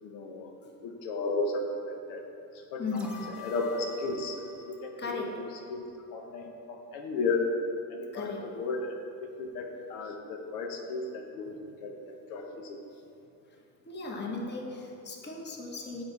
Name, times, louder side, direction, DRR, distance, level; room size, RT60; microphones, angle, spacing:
voice 1, 0.0-0.5 0.8-2.2 2.7-3.1 3.4-5.8 6.1-7.4 7.9-11.6 11.8-12.8, left 3 dB, 90° left, 2 dB, 0.9 m, -34 dB
voice 2, 2.8-3.2 5.0-5.4 8.1-8.4 11.3-11.6 13.8-16.0, left 3 dB, 25° left, 0 dB, 1.1 m, -36 dB
sound 1, 2.9-6.0 6.3-6.4, left 5 dB, ahead, 0.9 m, -48 dB
7.7 x 5.0 x 4.1 m, 2.9 s
cardioid pair, 115°, 43 cm